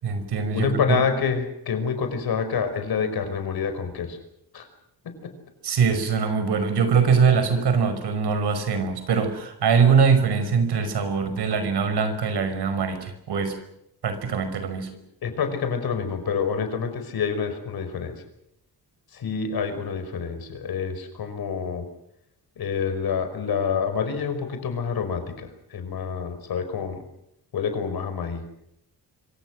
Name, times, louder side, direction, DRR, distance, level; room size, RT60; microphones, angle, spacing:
voice 1, 0.0-0.7 5.6-13.6 14.0-14.9, right 5 dB, 90° right, 9 dB, 5.5 m, -22 dB
voice 2, 0.5-4.2 4.5-4.7 5.1-5.3 15.2-18.2 19.1-21.9 22.6-27.0 27.5-28.4, left 6 dB, 70° left, 8 dB, 5.3 m, -27 dB
26.0 x 25.5 x 6.4 m, 0.79 s
wide cardioid pair, 175°, 39 cm